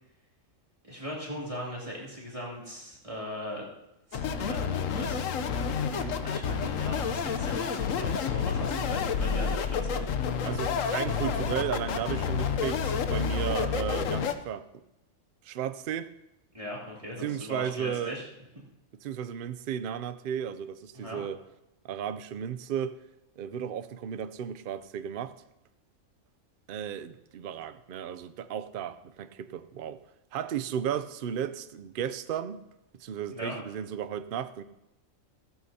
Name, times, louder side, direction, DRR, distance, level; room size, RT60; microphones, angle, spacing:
voice 1, 0.8-3.7 4.1-5.2 6.2-10.0 16.5-18.2 20.9-21.2 33.3-33.5, equal, 25° right, 2.9 m, -39 dB
sound 1, 4.1-14.3, left 6 dB, 80° left, 1.2 m, -29 dB
voice 2, 5.9-6.2 10.4-14.7 15.4-16.1 17.2-18.2 19.0-21.4 21.8-23.0 23.4-25.4 26.7-30.0 30.3-32.6 33.0-34.6, right 9 dB, 55° right, 0.6 m, -34 dB
16.0 x 14.0 x 2.8 m
omnidirectional pair, 1.3 m